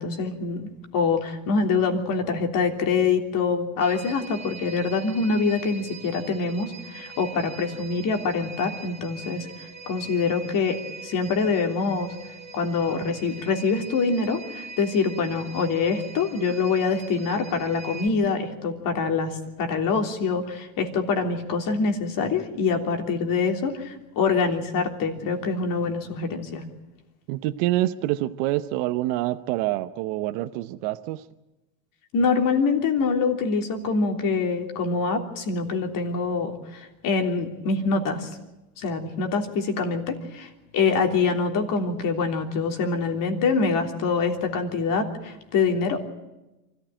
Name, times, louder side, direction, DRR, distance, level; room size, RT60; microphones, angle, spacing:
voice 1, 0.0-12.2 12.5-26.6 32.1-38.4 38.8-46.0, left 4 dB, 55° left, 4 dB, 3.4 m, -25 dB
sound 1, 3.8-18.1, right 4 dB, 15° right, 3.8 m, -42 dB
voice 2, 27.3-31.2, right 16 dB, 70° right, 10 dB, 1.0 m, -26 dB
24.5 x 14.5 x 9.0 m, 1.0 s
supercardioid pair, 105°, 40 cm